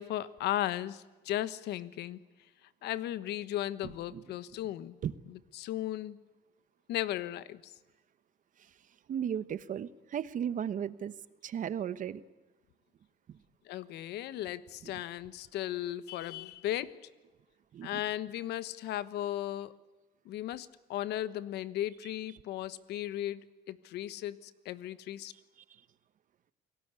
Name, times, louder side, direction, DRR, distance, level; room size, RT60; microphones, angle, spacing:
voice 1, 0.0-2.2 2.8-5.0 5.6-6.2 6.9-7.7 13.6-16.9 17.8-19.7 20.2-23.4 23.7-25.3, left 13 dB, 80° left, 15 dB, 1.3 m, -36 dB
voice 2, 9.1-11.1 11.4-12.2 14.8-14.9 17.7-18.0, right 9 dB, 50° right, 15 dB, 1.2 m, -35 dB
28.5 x 19.0 x 8.3 m, 1.2 s
cardioid pair, 110°, 17 cm